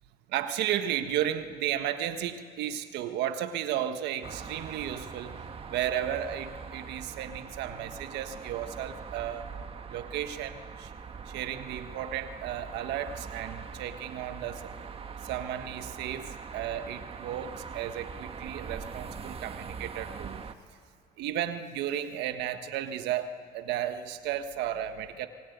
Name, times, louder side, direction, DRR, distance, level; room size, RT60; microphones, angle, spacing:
voice 1, 0.3-5.3 5.7-9.5 9.9-10.9 11.3-14.7 15.2-20.4 21.2-25.3, right 10 dB, 85° right, 8 dB, 1.5 m, -34 dB
sound 1, 4.2-20.5, right 5 dB, 35° right, 1.5 m, -42 dB
24.5 x 21.5 x 9.4 m, 2.2 s
cardioid pair, 110°, 17 cm